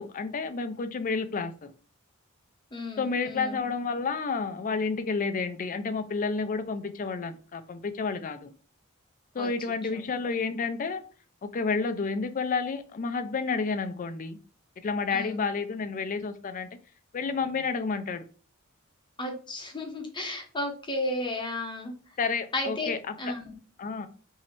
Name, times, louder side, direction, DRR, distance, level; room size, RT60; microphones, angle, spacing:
voice 1, 0.0-1.7 3.0-8.5 9.3-11.0 11.4-14.4 14.8-16.7 17.1-18.2 22.2-23.0 23.2-23.3 23.8-24.1, left 4 dB, 40° left, 9 dB, 0.4 m, -30 dB
voice 2, 2.7-3.7 9.4-9.5 9.9-10.0 15.1-15.4 19.2-21.9 22.5-22.9 23.2-23.5, left 1 dB, 20° left, 2 dB, 0.9 m, -33 dB
3.1 x 2.7 x 4.3 m, 0.39 s
head